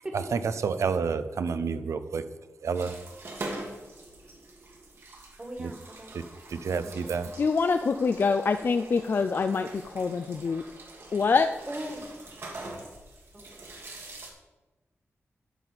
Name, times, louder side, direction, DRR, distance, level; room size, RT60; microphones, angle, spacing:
voice 1, 0.3-2.2 2.6-2.9 5.6-5.7 6.5-7.3, right 5 dB, 80° right, 11 dB, 0.6 m, -29 dB
sound 1, 2.7-14.3, right 2 dB, 55° right, 1.8 m, -44 dB
voice 2, 5.4-6.2 6.8-7.3 11.7-12.1 13.3-13.5, right 1 dB, 20° right, 2 dB, 1.6 m, -40 dB
voice 3, 7.4-10.6 11.1-11.5, left 4 dB, 45° left, 9 dB, 0.4 m, -25 dB
12.0 x 4.2 x 7.4 m, 1.1 s
wide cardioid pair, 165°, 5 cm